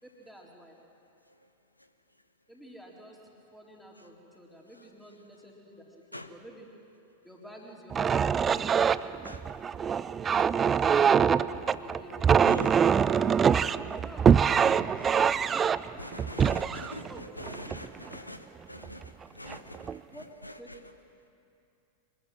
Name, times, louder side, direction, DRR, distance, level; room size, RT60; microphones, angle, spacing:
voice 1, 0.0-0.8 2.5-3.2 3.5-6.7 7.2-9.3 10.2-10.6 11.8-12.2 14.0-14.3 17.1-17.2 20.1-20.2 20.6-20.7, equal, ahead, -2 dB, 3.9 m, -50 dB
sound 1, 7.9-18.2 18.8-19.1 19.5-20.0, right 7 dB, 20° right, 0.4 m, -24 dB
voice 2, 16.0-17.1 17.4-19.8, left 1 dB, 85° left, 9 dB, 1.0 m, -42 dB
24.0 x 20.5 x 7.5 m, 2.6 s
figure-of-eight pair, 90°, 0 cm